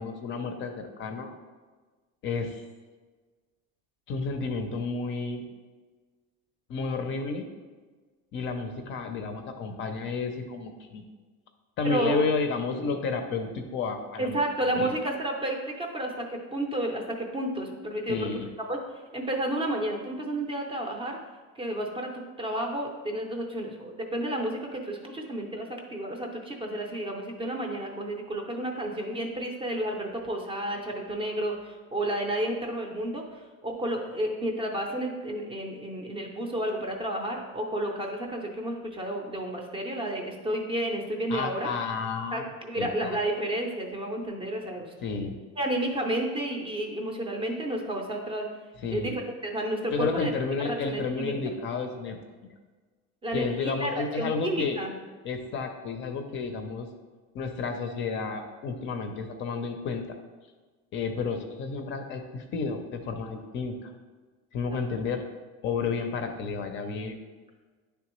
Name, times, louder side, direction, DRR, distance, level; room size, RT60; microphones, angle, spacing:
voice 1, 0.0-1.3 2.2-2.6 4.1-5.5 6.7-7.5 8.3-11.0 11.8-14.4 14.7-14.9 18.1-18.5 41.3-42.4 42.8-43.2 45.0-45.4 48.8-49.2 49.9-52.2 53.3-54.8 55.2-56.9 57.3-60.0 60.9-63.9 64.5-65.2 65.6-67.2, left 4 dB, 40° left, 5 dB, 0.5 m, -31 dB
voice 2, 11.8-12.2 14.2-18.3 18.6-18.8 19.1-21.2 21.6-41.7 42.3-44.9 45.6-48.5 48.9-50.3 50.6-51.5 53.2-53.9 54.2-54.9 64.7-64.8, right 1 dB, 15° right, 1 dB, 0.5 m, -31 dB
9.9 x 3.4 x 3.0 m, 1.4 s
cardioid pair, 170°, 32 cm